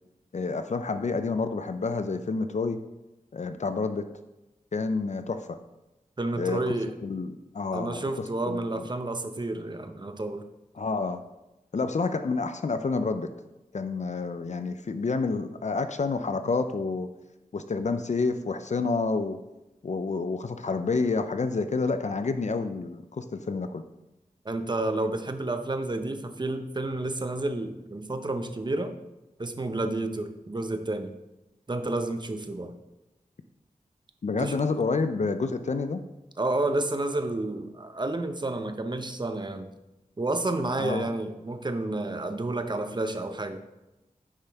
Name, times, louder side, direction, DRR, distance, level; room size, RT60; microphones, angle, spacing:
voice 1, 0.3-2.8 3.3-4.1 4.7-5.5 6.3-6.6 7.0-8.1 8.5-8.8 10.8-11.2 11.7-13.3 13.7-17.1 17.5-19.4 19.8-23.8 34.2-36.0 40.8-41.1, left 4 dB, 55° left, 9 dB, 0.5 m, -29 dB
voice 2, 6.2-6.9 7.7-10.4 24.4-28.9 29.4-31.1 31.7-32.8 34.4-34.6 36.4-39.7 40.2-43.6, right 2 dB, 30° right, 8 dB, 0.7 m, -30 dB
9.9 x 5.2 x 3.5 m, 0.98 s
wide cardioid pair, 70°, 14 cm